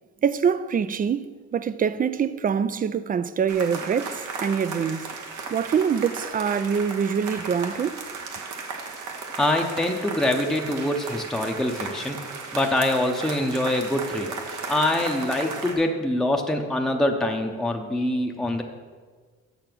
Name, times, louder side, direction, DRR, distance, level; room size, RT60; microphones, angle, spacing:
voice 1, 0.2-5.1 5.5-8.0, right 7 dB, 30° right, 0.4 m, -25 dB
sound 1, 3.5-15.7, right 4 dB, 75° right, 1.3 m, -35 dB
voice 2, 9.4-12.2 12.5-14.4 14.7-18.6, left 1 dB, ahead, 0.7 m, -24 dB
6.9 x 6.5 x 6.0 m
cardioid pair, 90°, 30 cm